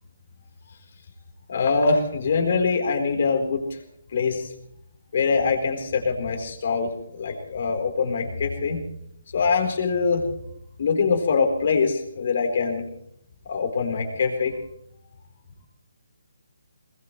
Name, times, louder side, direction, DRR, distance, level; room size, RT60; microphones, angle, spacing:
voice 1, 1.5-3.6 4.1-4.5 5.1-6.9 7.2-8.8 9.3-10.2 10.8-12.8 13.5-14.5, left 5 dB, 50° left, 3 dB, 4.2 m, -23 dB
21.5 x 20.0 x 3.3 m, 0.73 s
figure-of-eight pair, 150°, 0 cm